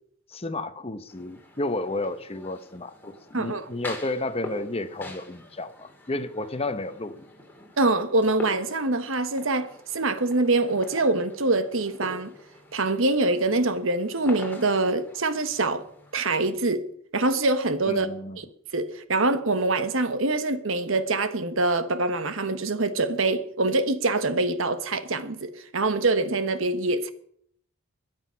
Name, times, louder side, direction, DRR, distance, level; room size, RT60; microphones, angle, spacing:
voice 1, 0.3-7.3 17.9-18.4, left 2 dB, 25° left, 0.9 m, -32 dB
sound 1, 1.1-16.5, left 1 dB, 10° left, 2.6 m, -44 dB
voice 2, 3.3-3.6 7.8-12.3 12.7-15.8 16.1-16.9 17.1-18.1 18.4-18.5 18.7-27.1, right 2 dB, 65° right, 1.2 m, -24 dB
22.0 x 8.0 x 5.7 m
head